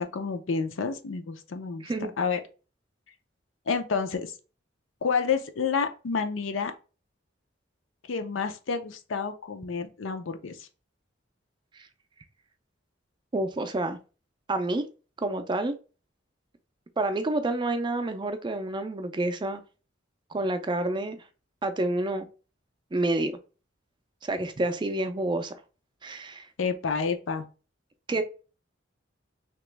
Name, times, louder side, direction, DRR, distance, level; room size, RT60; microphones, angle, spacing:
voice 1, 0.0-1.9 2.2-2.4 3.7-4.3 5.0-6.7 8.1-10.7 26.6-27.5, left 5 dB, 75° left, 0.5 m, -29 dB
voice 2, 13.3-14.0 14.5-14.8 15.2-15.7 17.0-19.6 20.3-21.2 21.6-22.3 22.9-23.4 24.2-25.5 26.0-26.5 28.1-28.2, right 2 dB, 25° right, 0.4 m, -28 dB
3.0 x 2.9 x 3.3 m
head